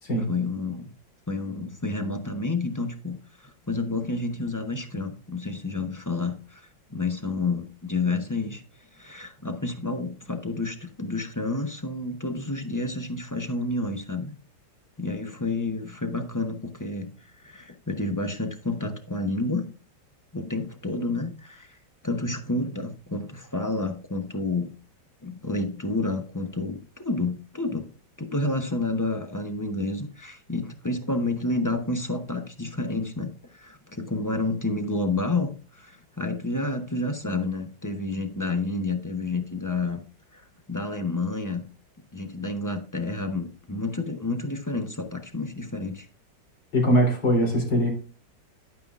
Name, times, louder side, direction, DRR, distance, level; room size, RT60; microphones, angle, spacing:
voice 1, 0.3-0.9 1.3-8.6 8.9-14.3 15.0-19.7 20.3-21.8 22.0-24.7 25.2-27.9 28.2-40.0 40.3-41.7 42.1-46.1, left 2 dB, 20° left, 5 dB, 0.4 m, -30 dB
voice 2, 46.7-47.9, equal, 80° left, 0 dB, 4.2 m, -21 dB
11.0 x 9.3 x 2.5 m, 0.37 s
omnidirectional pair, 1.9 m